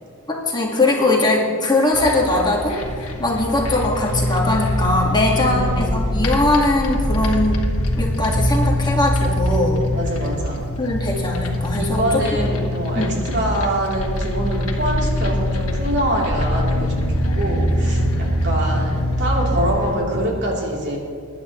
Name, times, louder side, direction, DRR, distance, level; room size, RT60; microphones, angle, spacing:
voice 1, 0.5-7.6 8.0-9.8 10.8-12.2 12.9-13.2, left 2 dB, 20° left, -2 dB, 1.8 m, -20 dB
sound 1, 1.9-20.0, left 1 dB, 70° left, 1.7 m, -23 dB
voice 2, 5.3-6.1 9.9-10.6 11.8-21.0, right 1 dB, 50° right, -3 dB, 3.3 m, -25 dB
22.5 x 11.0 x 3.1 m, 2.2 s
head